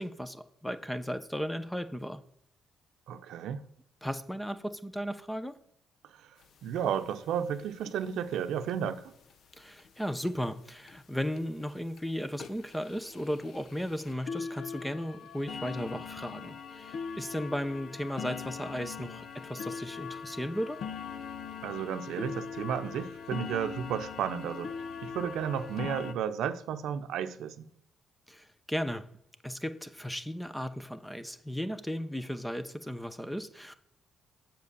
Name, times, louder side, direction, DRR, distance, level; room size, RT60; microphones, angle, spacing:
voice 1, 0.0-2.2 4.0-5.6 9.6-20.8 28.3-29.1 29.4-33.7, equal, 5° left, 0.8 m, -35 dB
voice 2, 3.1-3.6 6.1-6.3 6.6-9.1 21.6-24.7 25.0-27.7, right 8 dB, 80° right, 0.7 m, -33 dB
sound 1, 6.4-6.5 6.8-6.9 7.1-7.3 7.6-7.9 8.7-8.8 9.3-9.4 9.8-9.9 10.3-10.4 10.9-11.0 11.4-11.6 12.0-12.1 12.4-26.1, left 6 dB, 65° left, 0.7 m, -41 dB
7.4 x 5.4 x 6.8 m
cardioid pair, 90°, 0 cm